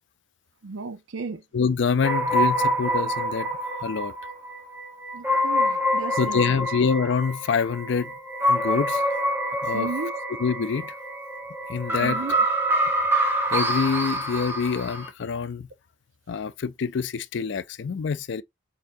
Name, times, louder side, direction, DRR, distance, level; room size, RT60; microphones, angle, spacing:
voice 1, 0.6-1.4 5.1-6.6 9.7-10.1 12.0-12.4, right 3 dB, 85° right, 0.7 m, -34 dB
voice 2, 1.5-3.5 3.8-4.1 6.2-8.1 8.5-9.0 9.6-9.9 10.4-10.9 11.7-12.2 13.5-15.7 16.3-18.4, left 5 dB, 65° left, 0.4 m, -26 dB
sound 1, 2.0-15.1, equal, 10° right, 1.2 m, -26 dB
4.4 x 3.7 x 2.6 m
head